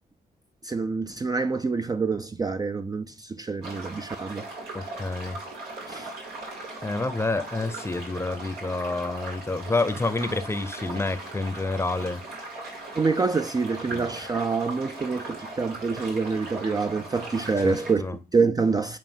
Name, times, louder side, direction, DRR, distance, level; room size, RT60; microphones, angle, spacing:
voice 1, 0.6-4.5 5.9-6.1 12.9-19.0, right 4 dB, 25° right, 0.4 m, -26 dB
sound 1, 3.6-17.9, right 2 dB, 90° right, 2.1 m, -39 dB
voice 2, 4.7-5.4 6.8-12.2 13.9-14.1 17.6-18.2, left 2 dB, 15° left, 0.7 m, -28 dB
7.4 x 2.6 x 5.3 m
cardioid pair, 75°, 16 cm